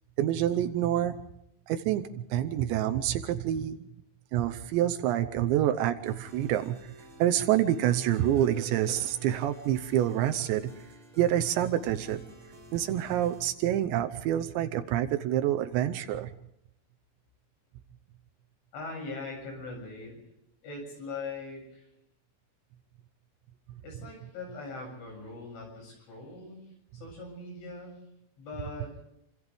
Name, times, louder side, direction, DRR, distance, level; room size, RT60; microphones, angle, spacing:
voice 1, 0.2-1.2 1.7-3.8 4.3-6.8 7.2-10.7 11.2-12.2 12.7-16.3, right 11 dB, 75° right, 8 dB, 2.9 m, -27 dB
sound 1, 6.1-13.4, right 1 dB, 25° right, 5.7 m, -51 dB
voice 2, 18.7-20.2 20.6-21.9 23.8-26.6 26.9-28.0 28.4-29.0, left 3 dB, 75° left, 3 dB, 9.8 m, -41 dB
29.0 x 25.0 x 3.5 m, 0.79 s
omnidirectional pair, 5.5 m